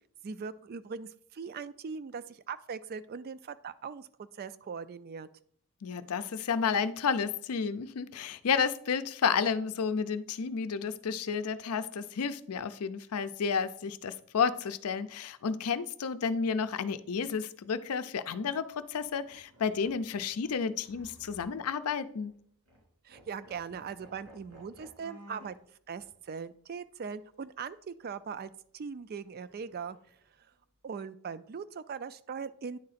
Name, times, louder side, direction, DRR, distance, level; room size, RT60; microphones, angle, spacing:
voice 1, 0.2-5.3 23.0-25.6 25.9-30.0 30.8-32.8, right 6 dB, 45° right, 0.3 m, -40 dB
voice 2, 5.8-22.3, left 6 dB, 80° left, 0.5 m, -31 dB
sound 1, 18.1-18.4 19.0-21.9 22.2-22.4 22.7-22.8 23.1-25.6 26.0-26.1 29.3-30.2, equal, 85° right, 3.2 m, -56 dB
9.7 x 3.8 x 4.1 m
head